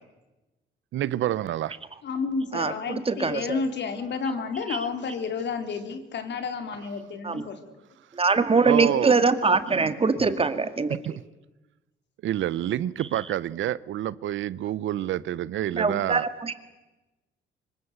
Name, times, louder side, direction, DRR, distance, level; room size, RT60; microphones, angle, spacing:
voice 1, 0.9-1.8 8.6-9.2 9.7-9.9 10.9-11.2 12.2-16.2, right 12 dB, 75° right, 0.8 m, -28 dB
voice 2, 2.0-7.6, left 5 dB, 65° left, 3.7 m, -31 dB
voice 3, 2.5-3.6 4.7-4.8 7.2-7.5 8.1-11.0 15.7-16.5, right 4 dB, 30° right, 2.2 m, -23 dB
26.0 x 23.0 x 8.0 m
cardioid pair, 90°, 20 cm